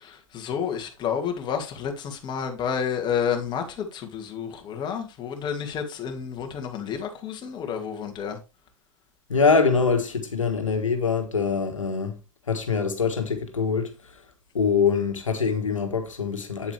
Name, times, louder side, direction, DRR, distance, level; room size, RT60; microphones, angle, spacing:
voice 1, 0.3-8.4, left 7 dB, 25° left, 2.0 m, -30 dB
voice 2, 9.3-12.1 12.5-13.9 14.5-16.7, left 5 dB, 80° left, 1.6 m, -24 dB
8.6 x 8.1 x 3.3 m
figure-of-eight pair, 100°, 16 cm